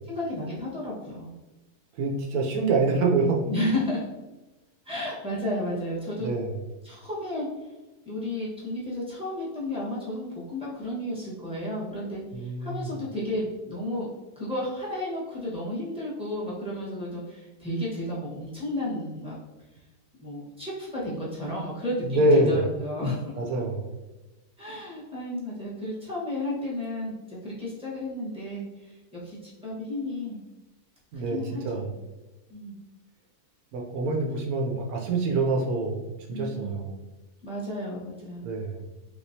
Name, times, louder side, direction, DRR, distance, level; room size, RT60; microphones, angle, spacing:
voice 1, 0.1-1.3 3.5-4.0 4.8-6.3 6.8-7.5 8.0-14.1 14.4-19.4 20.2-23.2 24.6-30.4 31.1-31.9 32.5-32.8 36.3-36.8 37.4-38.5, left 1 dB, 5° right, -7 dB, 1.0 m, -32 dB
voice 2, 2.0-3.4 6.2-6.5 12.3-12.9 22.0-22.6 23.4-23.9 31.1-31.9 33.7-37.0 38.4-38.9, right 2 dB, 70° right, 1 dB, 1.1 m, -26 dB
3.5 x 2.9 x 2.7 m, 1.1 s
omnidirectional pair, 1.7 m